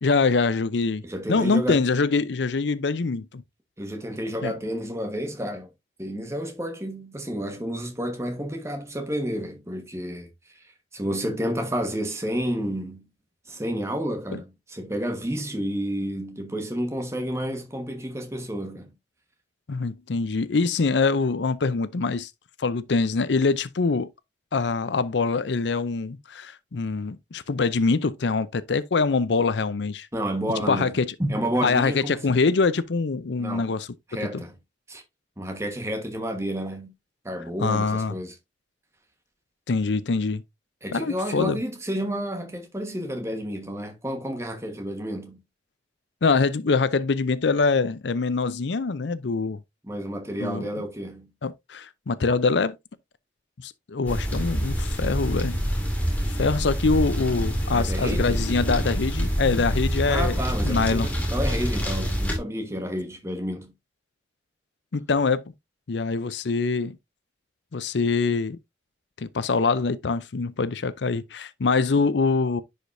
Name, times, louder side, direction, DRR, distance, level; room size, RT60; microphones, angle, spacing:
voice 1, 0.0-1.0 1.3-3.4 4.4-4.5 19.7-22.3 22.6-24.1 24.5-30.1 30.7-31.1 31.6-33.9 37.6-38.1 39.7-40.4 40.9-41.6 46.2-49.6 50.4-50.6 51.4-52.8 53.6-55.6 56.3-61.1 64.9-65.4 65.9-67.0 67.7-68.6 69.2-72.6, left 4 dB, 75° left, 0.6 m, -24 dB
voice 2, 1.0-1.8 3.8-5.7 6.0-10.3 10.9-13.1 13.5-18.9 30.1-32.3 33.4-34.6 34.9-35.0 35.4-36.9 37.2-38.3 40.8-45.4 49.8-51.3 57.7-58.5 60.1-63.7, equal, 15° right, 1.4 m, -30 dB
sound 1, 54.1-62.4, equal, 10° left, 2.2 m, -26 dB
10.5 x 5.1 x 2.7 m
head